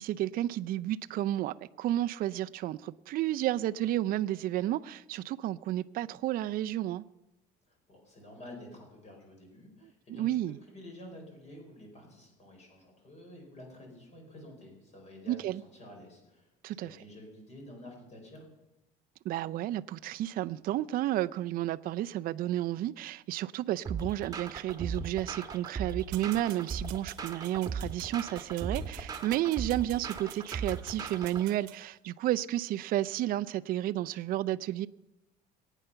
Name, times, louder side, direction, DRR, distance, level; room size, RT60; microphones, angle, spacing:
voice 1, 0.0-7.0 10.1-10.6 15.3-15.6 16.6-17.0 19.2-34.9, right 13 dB, 50° right, 0.4 m, -32 dB
voice 2, 7.7-18.5, left 1 dB, 35° left, 5.0 m, -50 dB
sound 1, 23.8-31.5, right 5 dB, 20° right, 1.5 m, -38 dB
sound 2, 26.1-31.8, right 16 dB, 85° right, 1.0 m, -50 dB
22.5 x 9.2 x 5.7 m
cardioid pair, 130°, 18 cm